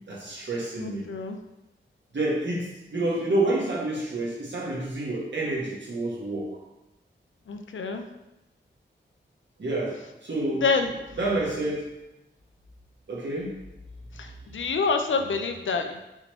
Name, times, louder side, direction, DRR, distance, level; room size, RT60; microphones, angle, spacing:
voice 1, 0.1-1.1 2.1-6.6 9.6-10.6 11.2-11.9 13.1-13.6, right 2 dB, 65° right, -4 dB, 1.4 m, -28 dB
voice 2, 0.8-1.4 7.5-8.1 10.6-10.9 14.1-16.0, left 4 dB, 75° left, 6 dB, 0.5 m, -27 dB
5.5 x 3.1 x 3.0 m, 0.95 s
cardioid pair, 60°, 20 cm